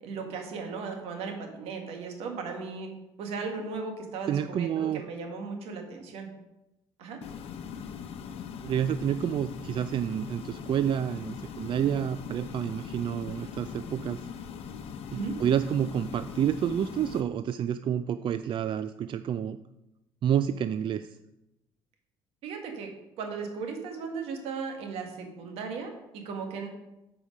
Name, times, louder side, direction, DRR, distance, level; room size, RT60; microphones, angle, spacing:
voice 1, 0.0-2.9 3.2-6.3 7.0-7.2 15.1-15.4 22.4-22.9 23.2-26.7, right 5 dB, 80° right, 3 dB, 1.7 m, -36 dB
voice 2, 4.3-5.0 8.6-14.2 15.1-19.6 20.2-21.2, right 9 dB, 55° right, 12 dB, 0.4 m, -29 dB
sound 1, 7.2-17.2, left 7 dB, 75° left, 0.8 m, -41 dB
8.6 x 5.0 x 5.3 m, 0.94 s
supercardioid pair, 65°, 10 cm